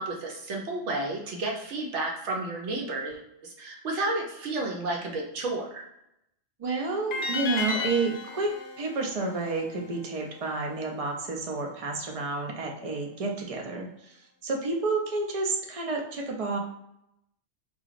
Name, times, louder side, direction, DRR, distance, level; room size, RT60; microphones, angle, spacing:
voice 1, 0.0-5.8, right 2 dB, 80° right, -1 dB, 0.9 m, -32 dB
voice 2, 6.6-14.2 14.4-16.6, right 3 dB, 55° right, 0 dB, 0.4 m, -30 dB
sound 1, 7.1-10.3, left 3 dB, 60° left, 0.6 m, -34 dB
2.8 x 2.4 x 2.4 m, 0.81 s
omnidirectional pair, 1.2 m